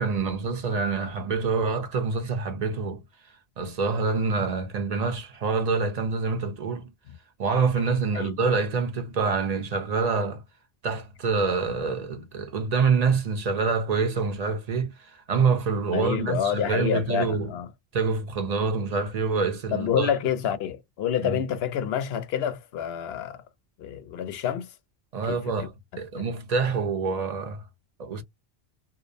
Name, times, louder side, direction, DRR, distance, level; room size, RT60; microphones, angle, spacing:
voice 1, 0.0-3.0 3.6-6.9 7.4-10.4 10.8-17.5 17.9-20.1 21.2-21.4 25.1-27.6 28.0-28.2, right 4 dB, 45° right, 0.6 m, -26 dB
voice 2, 15.9-17.7 19.7-23.4 23.8-24.7 25.3-25.7 26.2-26.3, left 9 dB, 75° left, 0.8 m, -28 dB
2.5 x 2.0 x 2.5 m
omnidirectional pair, 1.1 m